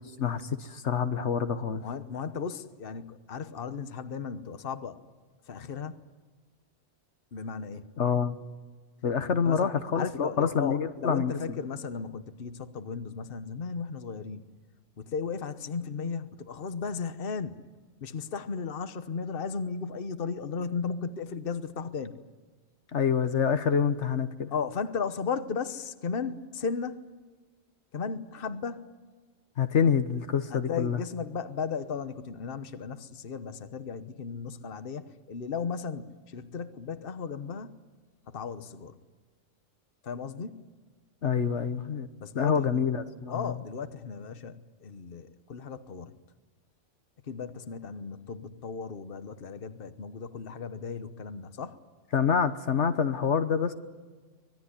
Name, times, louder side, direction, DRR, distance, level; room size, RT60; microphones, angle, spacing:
voice 1, 0.2-1.8 8.0-8.4 9.0-11.6 22.9-24.5 29.6-31.0 41.2-42.1 42.3-43.5 52.1-53.7, left 7 dB, 70° left, 9 dB, 1.4 m, -27 dB
voice 2, 1.8-5.0 5.5-6.0 7.3-7.8 9.4-14.4 15.0-17.7 18.0-22.2 24.5-27.0 27.9-28.9 30.5-37.7 38.3-39.0 40.0-40.7 42.2-42.8 43.3-46.2 47.3-51.8, left 5 dB, 50° left, 10 dB, 1.2 m, -35 dB
25.0 x 20.0 x 9.9 m, 1.3 s
omnidirectional pair, 1.2 m